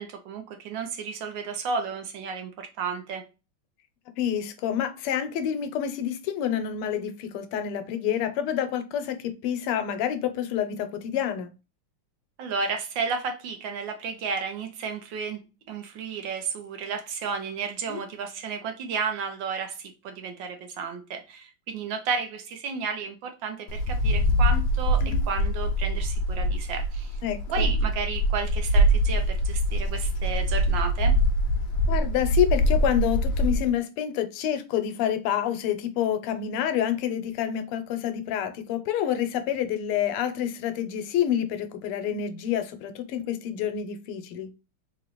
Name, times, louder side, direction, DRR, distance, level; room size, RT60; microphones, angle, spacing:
voice 1, 0.0-3.2 12.4-15.4 15.7-27.2 27.5-31.2, right 5 dB, 70° right, 1.3 m, -32 dB
voice 2, 4.2-11.5 17.9-18.0 27.2-27.7 31.9-44.5, left 10 dB, 85° left, 1.6 m, -28 dB
Wind, 23.7-33.7, equal, 70° left, 1.2 m, -24 dB
3.7 x 3.0 x 2.9 m
omnidirectional pair, 2.4 m